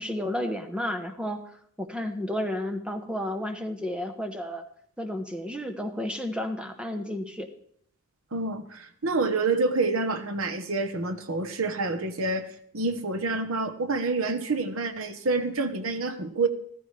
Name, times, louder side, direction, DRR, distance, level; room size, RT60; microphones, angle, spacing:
voice 1, 0.0-4.6 5.0-7.5, left 1 dB, 5° right, 5 dB, 0.9 m, -32 dB
voice 2, 8.3-16.5, right 3 dB, 80° right, 9 dB, 1.0 m, -28 dB
14.0 x 14.0 x 3.3 m, 0.66 s
head